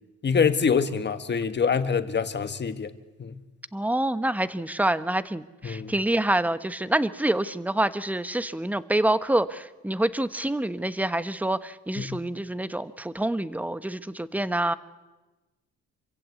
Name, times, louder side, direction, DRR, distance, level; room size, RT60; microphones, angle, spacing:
voice 1, 0.2-2.9 3.2-3.4 5.6-5.9 12.0-12.2, left 6 dB, 35° left, 1.6 m, -25 dB
voice 2, 3.7-14.7, right 1 dB, 5° right, 1.0 m, -27 dB
26.5 x 15.5 x 8.5 m
cardioid pair, 90°, 30 cm